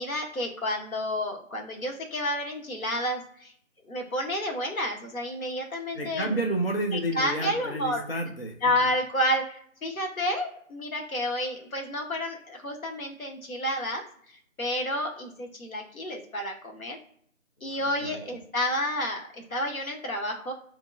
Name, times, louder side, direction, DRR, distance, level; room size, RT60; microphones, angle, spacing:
voice 1, 0.0-3.5 3.9-6.4 6.9-8.0 8.6-14.0 14.6-17.0 17.6-20.5, left 1 dB, 80° left, 2 dB, 1.1 m, -30 dB
voice 2, 5.9-8.5 17.6-18.2, right 1 dB, 45° left, 3 dB, 0.4 m, -31 dB
2.8 x 2.3 x 2.5 m, 0.64 s
figure-of-eight pair, 170°, 41 cm